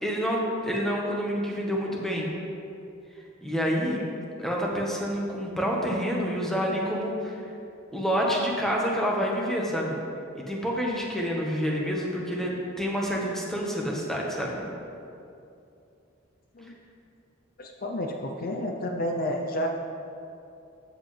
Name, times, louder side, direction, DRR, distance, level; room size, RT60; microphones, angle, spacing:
voice 1, 0.0-2.3 3.4-4.0 4.4-7.4 7.9-10.0 10.3-14.6, equal, ahead, -3 dB, 1.3 m, -28 dB
voice 2, 17.6-19.7, left 1 dB, 45° left, 2 dB, 0.6 m, -30 dB
13.5 x 8.0 x 3.3 m, 2.7 s
head